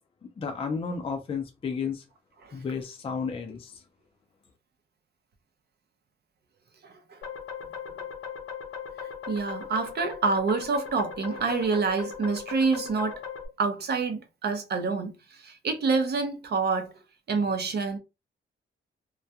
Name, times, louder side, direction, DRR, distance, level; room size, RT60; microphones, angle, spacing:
voice 1, 0.4-2.0 2.5-3.8, left 5 dB, 25° left, 0.4 m, -32 dB
sound 1, 7.2-13.5, left 7 dB, 80° left, 0.6 m, -38 dB
voice 2, 9.3-13.2 13.6-16.9 17.3-18.0, right 4 dB, 50° right, 0.6 m, -27 dB
2.3 x 2.2 x 2.7 m
wide cardioid pair, 135°, 21 cm